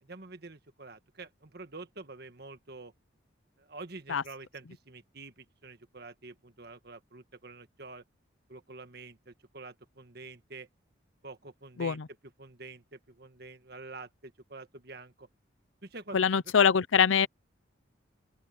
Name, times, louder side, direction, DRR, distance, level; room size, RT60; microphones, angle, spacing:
voice 1, 0.0-2.9 3.6-8.0 8.5-10.7 11.2-12.0 12.4-15.3 15.8-16.3, right 3 dB, 50° right, 1.6 m, -47 dB
voice 2, 16.1-17.3, left 7 dB, 80° left, 0.6 m, -24 dB
open air
head